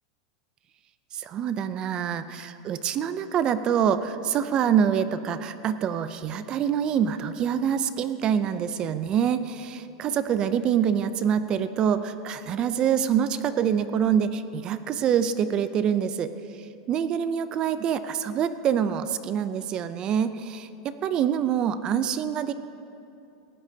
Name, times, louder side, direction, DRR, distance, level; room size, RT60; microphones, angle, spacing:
voice 1, 1.1-16.3 16.9-22.5, right 8 dB, 25° right, 12 dB, 0.4 m, -25 dB
19.5 x 15.0 x 2.7 m, 2.8 s
supercardioid pair, 170°, 4 cm